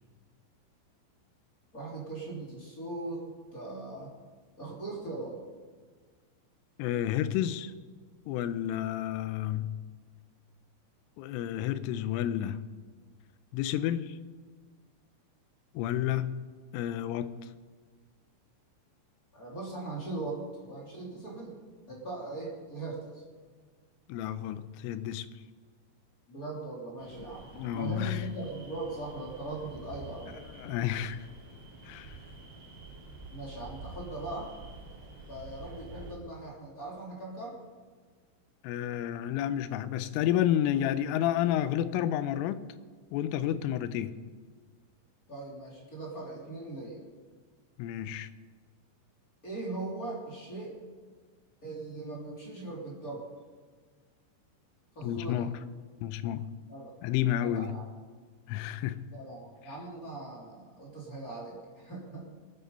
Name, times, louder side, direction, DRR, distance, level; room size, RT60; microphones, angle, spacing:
voice 1, 1.7-4.1 4.6-5.4 19.3-21.6 21.9-23.2 26.3-30.4 33.3-34.5 35.0-37.6 45.3-47.0 49.4-50.8 51.6-53.2 54.9-55.4 56.7-56.9 57.4-57.8 59.1-62.2, right 2 dB, 20° left, 2.6 m, -40 dB
voice 2, 6.8-7.7 8.3-9.8 11.2-12.7 13.5-14.2 15.7-16.4 16.7-17.5 24.1-25.3 27.6-28.3 30.4-31.3 31.8-32.2 38.6-42.7 43.1-44.2 47.8-48.3 55.0-55.5 56.0-56.5 57.0-57.8 58.5-59.0, left 11 dB, 90° left, 3.2 m, -31 dB
sound 1, 27.0-36.2, right 3 dB, 50° right, 4.7 m, -48 dB
22.0 x 9.5 x 5.3 m
omnidirectional pair, 5.6 m